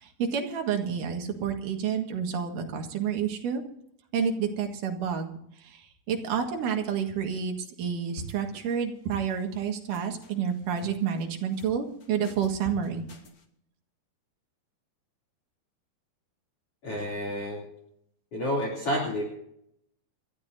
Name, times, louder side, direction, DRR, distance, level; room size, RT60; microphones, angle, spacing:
voice 1, 0.0-3.6 4.1-13.0, right 7 dB, 65° right, 3 dB, 3.0 m, -29 dB
sound 1, 8.1-8.8 9.1-9.6 9.9-10.9 11.2-11.7 12.0-13.4, equal, 65° left, 0.8 m, -46 dB
voice 2, 16.8-17.7 18.3-19.2, equal, 40° left, 0 dB, 3.6 m, -30 dB
28.5 x 13.0 x 2.7 m, 0.74 s
omnidirectional pair, 4.4 m